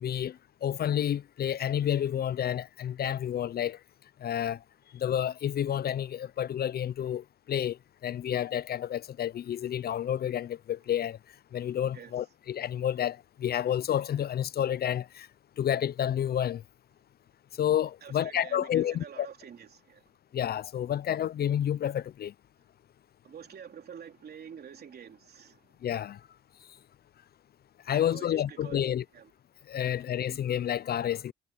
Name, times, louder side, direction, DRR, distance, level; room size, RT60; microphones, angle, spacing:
voice 1, 0.0-3.8 4.2-4.6 4.9-11.2 11.5-15.3 15.6-16.6 17.6-19.3 20.3-22.3 25.8-26.2 27.9-29.0 29.7-31.3, left 10 dB, 50° left, 0.5 m, -30 dB
voice 2, 18.0-20.0 23.2-25.6 27.9-28.8 29.1-29.3, right 8 dB, 55° right, 3.4 m, -47 dB
cardioid pair, 90°, 20 cm